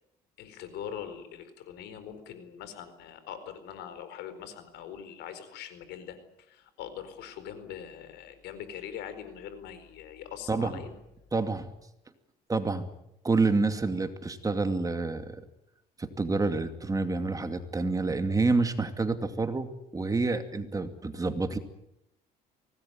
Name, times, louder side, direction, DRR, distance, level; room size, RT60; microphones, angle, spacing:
voice 1, 0.4-10.9, left 9 dB, 85° left, 11 dB, 4.6 m, -42 dB
voice 2, 10.5-10.8 11.3-11.7 12.5-12.9 13.2-15.4 16.0-21.6, right 3 dB, 20° right, 8 dB, 2.5 m, -28 dB
24.5 x 19.0 x 9.3 m, 0.83 s
cardioid pair, 110°, 17 cm